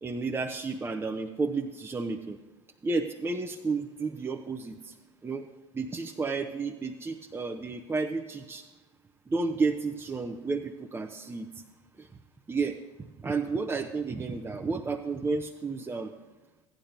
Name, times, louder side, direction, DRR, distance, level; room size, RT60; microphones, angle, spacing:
voice 1, 0.0-2.4 2.8-4.9 5.2-5.5 5.7-8.7 9.3-11.5 12.0-12.1 12.5-16.1, right 4 dB, 15° right, 2 dB, 0.6 m, -32 dB
16.0 x 10.5 x 2.6 m, 1.1 s
figure-of-eight pair, 70°, 15 cm